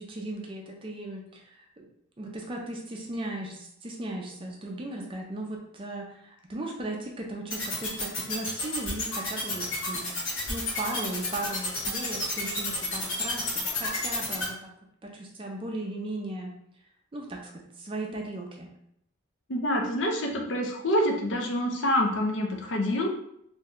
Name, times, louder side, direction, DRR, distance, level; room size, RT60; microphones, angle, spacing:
voice 1, 0.0-1.9 2.2-10.1 10.5-14.7 15.0-16.5 17.1-18.7, right 2 dB, 25° right, 0 dB, 0.4 m, -37 dB
sound 1, 7.5-14.4, left 3 dB, 80° left, 1.2 m, -30 dB
voice 2, 19.5-23.1, left 1 dB, 65° left, 2 dB, 0.5 m, -26 dB
2.6 x 2.2 x 3.6 m, 0.74 s
head